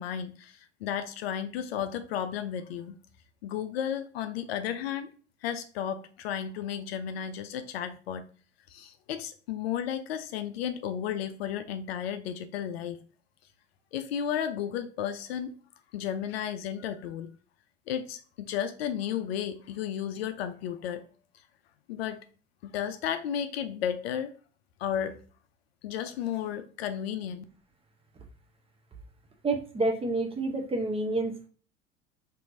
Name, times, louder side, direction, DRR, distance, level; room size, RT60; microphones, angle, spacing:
voice 1, 0.0-3.0 3.4-5.1 5.4-8.2 8.7-13.0 13.9-15.5 15.9-17.3 17.9-21.0 21.9-22.2 22.6-24.3 24.8-25.2 25.8-27.4, left 9 dB, 60° left, 9 dB, 0.5 m, -33 dB
voice 2, 29.4-31.5, right 2 dB, 15° right, 3 dB, 0.7 m, -29 dB
4.4 x 2.7 x 2.6 m, 0.39 s
figure-of-eight pair, 75°, 35 cm